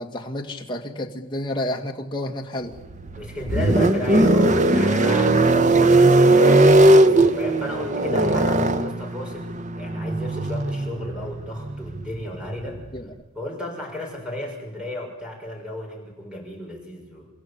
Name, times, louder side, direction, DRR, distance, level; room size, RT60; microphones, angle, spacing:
voice 1, 0.0-2.8 8.3-8.4 12.9-13.2, left 1 dB, 20° left, 1 dB, 2.1 m, -30 dB
sound 1, 2.7-13.0, right 2 dB, 35° right, 0.9 m, -18 dB
voice 2, 3.1-12.8 13.3-17.3, left 1 dB, 5° right, 0 dB, 6.7 m, -34 dB
29.0 x 15.5 x 8.7 m, 1.0 s
head